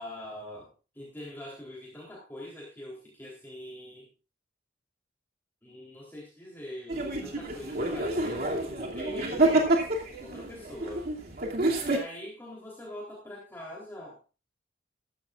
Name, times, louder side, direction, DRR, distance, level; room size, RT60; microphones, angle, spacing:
voice 1, 0.0-4.1 5.6-9.7 10.2-11.4 11.8-14.2, left 1 dB, 10° left, -3 dB, 3.7 m, -43 dB
sound 1, 6.9-12.0, right 2 dB, 55° right, 2.7 m, -28 dB
14.5 x 14.0 x 2.5 m, 0.32 s
head